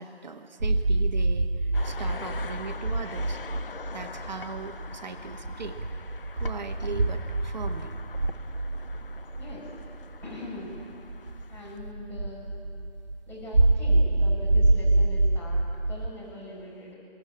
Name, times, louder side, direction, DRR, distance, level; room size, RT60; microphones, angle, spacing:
voice 1, 0.0-3.4 3.9-5.8 6.4-7.9, right 4 dB, 45° right, 6 dB, 1.3 m, -39 dB
sound 1, 0.6-16.1, right 2 dB, 80° right, 1.5 m, -26 dB
sound 2, 1.7-11.8, left 5 dB, 60° left, 0.9 m, -44 dB
voice 2, 9.4-9.7 10.2-10.8 11.5-12.6 13.3-16.9, left 2 dB, 5° left, -7 dB, 5.1 m, -42 dB
22.0 x 18.0 x 8.6 m, 2.6 s
figure-of-eight pair, 155°, 31 cm